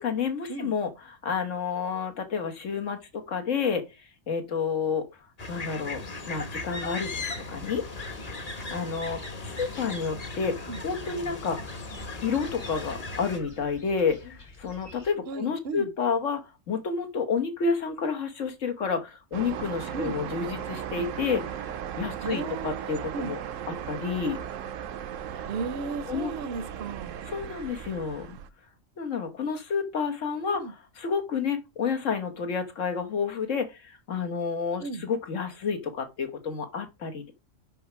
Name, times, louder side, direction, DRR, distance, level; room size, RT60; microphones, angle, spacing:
voice 1, 0.0-5.0 5.5-6.0 6.3-7.2 7.5-7.8 8.4-11.6 12.2-21.7 21.9-23.4 23.9-24.4 25.3-25.4 26.1-26.3 27.3-28.4 29.0-37.3, left 5 dB, 70° left, 1.7 m, -30 dB
sound 1, 5.4-13.4, left 3 dB, 35° left, 1.0 m, -37 dB
sound 2, 7.6-15.1, left 1 dB, 55° left, 2.4 m, -48 dB
voice 2, 15.3-15.9 19.9-20.2 22.2-23.4 25.5-27.2 30.5-30.7 34.8-35.1, right 4 dB, 55° right, 0.8 m, -35 dB
sound 3, 19.3-28.5, right 9 dB, 80° right, 1.0 m, -37 dB
5.9 x 5.5 x 5.5 m
omnidirectional pair, 1.3 m